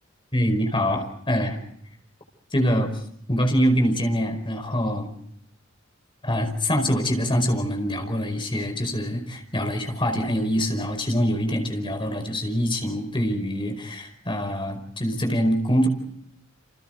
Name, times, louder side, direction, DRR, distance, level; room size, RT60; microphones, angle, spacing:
voice 1, 0.3-1.6 2.5-2.9 3.3-5.1 6.2-15.9, equal, 25° left, 5 dB, 5.0 m, -24 dB
29.5 x 28.0 x 3.9 m, 0.69 s
head